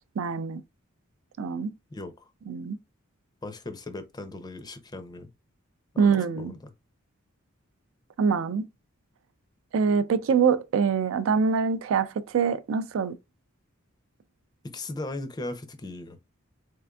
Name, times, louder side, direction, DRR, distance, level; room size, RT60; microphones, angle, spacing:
voice 1, 0.2-0.6 1.4-1.7 2.5-2.8 6.0-6.5 8.2-8.6 9.7-13.2, right 6 dB, 70° right, 0.3 m, -24 dB
voice 2, 1.9-2.3 3.4-5.3 5.9-6.7 14.6-16.2, left 2 dB, 20° left, 0.5 m, -38 dB
3.6 x 3.3 x 2.2 m
head